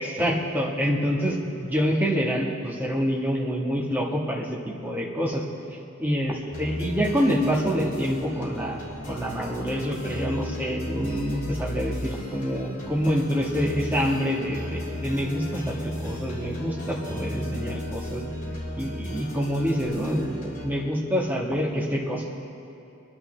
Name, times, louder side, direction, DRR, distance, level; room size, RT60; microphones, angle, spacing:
voice 1, 0.0-5.4 6.0-18.2 18.8-22.2, equal, 10° right, -4 dB, 1.5 m, -26 dB
sound 1, 6.5-20.7, left 1 dB, 35° left, 3.3 m, -35 dB
23.0 x 11.0 x 3.4 m, 2.7 s
head